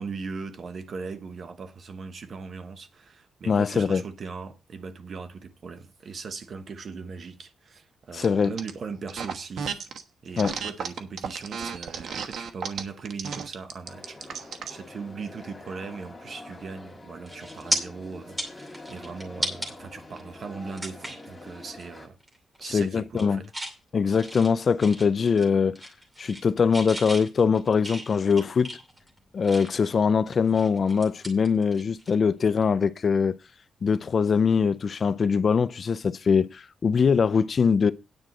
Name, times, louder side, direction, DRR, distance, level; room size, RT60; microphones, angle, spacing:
voice 1, 0.0-9.7 10.2-22.2 22.6-23.4, right 5 dB, 45° right, 1.1 m, -39 dB
voice 2, 3.5-4.0 8.1-8.5 10.4-10.5 22.7-23.4 23.9-25.8 26.2-28.7 29.3-33.4 33.8-37.9, left 6 dB, 40° left, 0.4 m, -22 dB
sound 1, 8.2-8.7 9.1-10.0 10.4-14.8, right 6 dB, 70° right, 1.1 m, -34 dB
sound 2, 13.8-22.1, left 2 dB, 15° left, 2.1 m, -45 dB
sound 3, 16.7-16.9 17.3-17.8 18.2-19.7 20.2-20.3 20.8-21.3 21.7-21.9 22.2-22.6 23.0-23.8 24.1-25.5 25.7-26.5 26.7-29.9 30.3-32.1 32.4-32.6 34.5-34.7, right 1 dB, 15° right, 2.5 m, -35 dB
9.7 x 4.8 x 7.4 m
wide cardioid pair, 170°, 0 cm